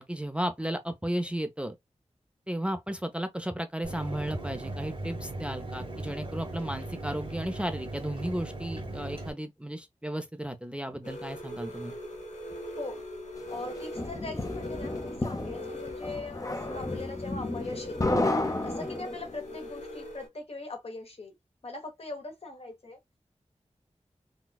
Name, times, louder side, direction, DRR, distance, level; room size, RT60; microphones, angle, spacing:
voice 1, 0.0-1.8 2.5-12.0 18.8-18.9, right 1 dB, 10° right, 0.5 m, -34 dB
Mechanisms, 3.8-9.3, right 1 dB, 50° right, 1.1 m, -38 dB
sound 1, 11.0-20.3, left 1 dB, 90° left, 1.0 m, -41 dB
voice 2, 13.5-18.0 18.6-21.4 21.6-23.0, left 2 dB, 55° left, 1.1 m, -41 dB
sound 2, 13.5-19.4, left 2 dB, 30° left, 0.7 m, -32 dB
4.0 x 2.3 x 2.2 m
wide cardioid pair, 90°, 12 cm